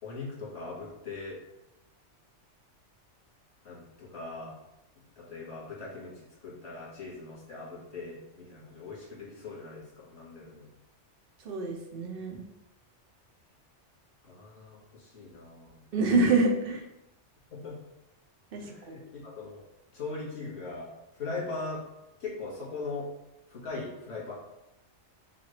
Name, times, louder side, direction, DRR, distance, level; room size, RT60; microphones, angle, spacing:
voice 1, 0.0-1.4 3.6-4.5 5.2-10.7 14.2-15.8 17.5-17.8 18.6-19.6 19.9-20.9 21.1-21.8 22.2-23.1 23.5-24.3, left 3 dB, 60° left, -6 dB, 1.9 m, -40 dB
voice 2, 11.4-12.4 15.9-16.8 18.5-19.0, right 3 dB, 55° right, 2 dB, 0.8 m, -27 dB
5.8 x 2.4 x 3.2 m, 0.91 s
omnidirectional pair, 1.2 m